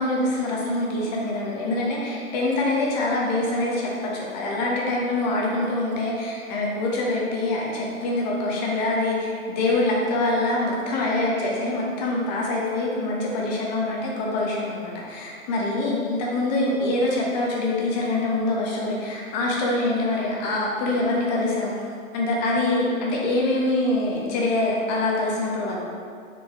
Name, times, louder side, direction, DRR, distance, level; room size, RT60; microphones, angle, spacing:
voice 1, 0.0-21.7 22.1-25.8, left 2 dB, 30° left, -3 dB, 1.2 m, -25 dB
7.0 x 4.5 x 3.1 m, 2.2 s
hypercardioid pair, 140°, 41 cm